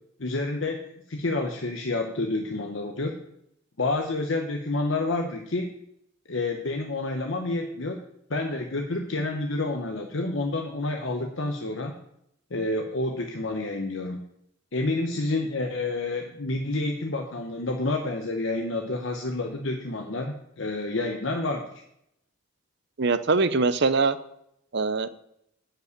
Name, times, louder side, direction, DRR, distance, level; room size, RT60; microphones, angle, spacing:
voice 1, 0.2-3.1 3.8-5.8 6.3-8.0 8.3-12.0 12.5-14.2 14.7-21.8, left 2 dB, 65° left, 4 dB, 1.0 m, -29 dB
voice 2, 23.0-24.2 24.7-25.1, right 4 dB, 55° right, 13 dB, 0.7 m, -22 dB
10.5 x 5.5 x 8.1 m, 0.75 s
head